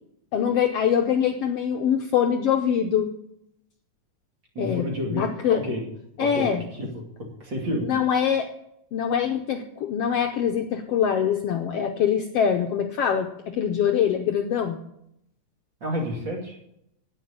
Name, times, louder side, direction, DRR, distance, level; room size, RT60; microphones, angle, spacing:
voice 1, 0.3-3.1 4.6-5.6 6.2-6.6 7.8-8.5 8.9-14.8, left 8 dB, 70° left, 5 dB, 1.5 m, -24 dB
voice 2, 4.5-5.9 6.2-6.9 7.4-7.9 15.8-16.6, equal, 40° right, 0 dB, 3.0 m, -30 dB
10.0 x 9.4 x 8.7 m, 0.78 s
omnidirectional pair, 3.4 m